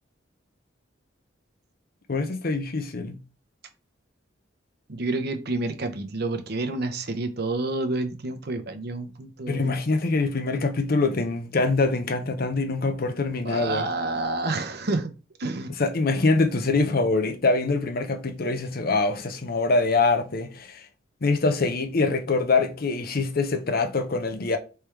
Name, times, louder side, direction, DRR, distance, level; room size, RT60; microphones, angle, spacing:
voice 1, 2.1-3.2 9.5-13.9 15.8-20.8 21.2-24.6, left 3 dB, 50° left, 0.7 m, -24 dB
voice 2, 4.9-9.8 13.4-15.1 15.4-15.7, right 2 dB, 55° right, 0.8 m, -29 dB
3.5 x 3.4 x 4.5 m
head